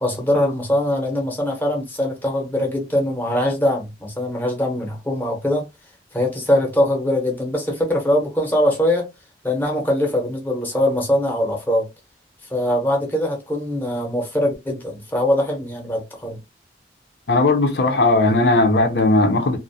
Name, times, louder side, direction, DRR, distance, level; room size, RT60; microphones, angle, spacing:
voice 1, 0.0-5.7 6.1-9.1 9.4-11.9 12.5-16.4, left 1 dB, 10° left, 0.7 m, -22 dB
voice 2, 17.3-19.6, left 2 dB, 70° left, 0.6 m, -17 dB
2.4 x 2.1 x 2.6 m
head